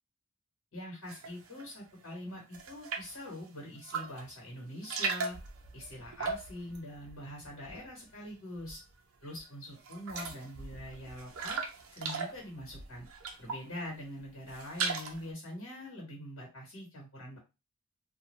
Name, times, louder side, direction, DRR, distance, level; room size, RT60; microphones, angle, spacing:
voice 1, 0.7-5.4 5.7-8.8 9.2-11.6 11.9-13.1 13.4-17.4, left 1 dB, 90° left, -3 dB, 1.4 m, -44 dB
sound 1, 1.1-1.7 2.0-3.2 3.8-4.3 4.6-8.0 8.3-9.0 9.4-9.5 9.8-13.8 14.2-15.3, right 4 dB, 75° right, 0.6 m, -38 dB
2.4 x 2.3 x 3.1 m, 0.27 s
head